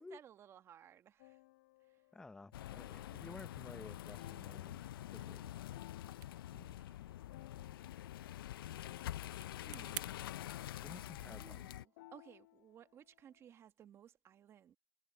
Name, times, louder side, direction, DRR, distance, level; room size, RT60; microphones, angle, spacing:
voice 1, 0.0-1.4 1.8-2.1 2.7-2.9 5.1-5.9 6.8-7.2 7.7-7.9 8.4-9.1 9.6-10.2 11.3-14.8, right 9 dB, 20° right, 1.3 m, -61 dB
sound 1, 1.2-13.5, left 19 dB, 45° left, 1.0 m, -63 dB
voice 2, 2.1-5.5 6.5-6.8 10.8-11.8, left 3 dB, 5° left, 0.7 m, -54 dB
sound 2, 2.5-11.8, left 13 dB, 70° left, 0.5 m, -46 dB
sound 3, 5.9-10.1, right 17 dB, 55° right, 0.6 m, -53 dB
hypercardioid pair, 145°, 12 cm